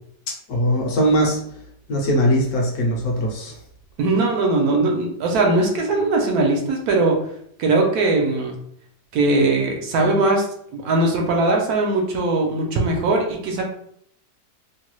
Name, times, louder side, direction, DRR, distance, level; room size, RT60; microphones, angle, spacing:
voice 1, 0.5-1.4 1.9-3.5, equal, 70° left, 0 dB, 1.1 m, -20 dB
voice 2, 4.0-7.2 7.6-8.6 9.1-10.5 10.7-13.6, right 2 dB, 75° right, 1 dB, 1.1 m, -20 dB
3.1 x 2.2 x 3.0 m, 0.68 s
omnidirectional pair, 1.8 m